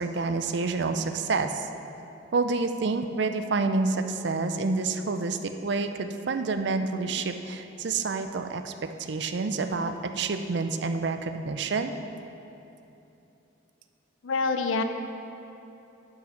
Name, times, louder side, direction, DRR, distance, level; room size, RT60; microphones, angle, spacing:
voice 1, 0.0-1.7 2.3-8.7 9.1-11.9, right 3 dB, 60° right, 8 dB, 0.5 m, -28 dB
voice 2, 14.2-14.8, left 4 dB, 80° left, 7 dB, 0.6 m, -26 dB
10.5 x 5.6 x 5.1 m, 2.9 s
head